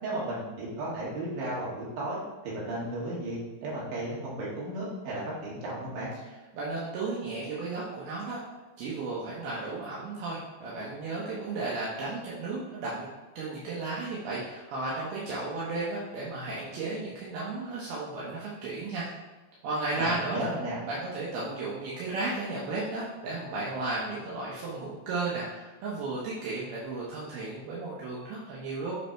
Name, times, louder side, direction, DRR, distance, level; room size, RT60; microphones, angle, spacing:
voice 1, 0.0-6.1 19.9-20.8, right 1 dB, 60° right, -6 dB, 3.2 m, -34 dB
voice 2, 6.5-8.4 8.8-13.1 13.4-19.1 19.6-20.5 20.9-28.9, right 3 dB, 75° right, -6 dB, 2.8 m, -34 dB
8.0 x 3.4 x 4.4 m, 1.2 s
omnidirectional pair, 4.6 m